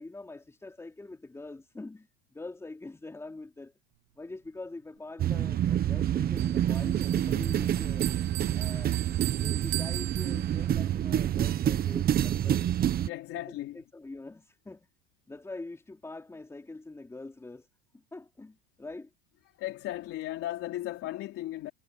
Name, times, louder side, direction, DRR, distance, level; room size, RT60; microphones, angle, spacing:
voice 1, 0.0-3.7 4.2-8.1 8.5-9.0 9.3-12.7 13.7-14.9 15.3-17.7 17.9-19.1, left 2 dB, 10° left, 4.2 m, -44 dB
sound 1, 5.2-13.1, right 11 dB, 30° right, 1.1 m, -27 dB
Bell, 6.4-10.9, right 25 dB, 75° right, 0.9 m, -40 dB
voice 2, 13.1-13.8 19.5-21.7, left 14 dB, 45° left, 3.5 m, -36 dB
supercardioid pair, 140°, 32 cm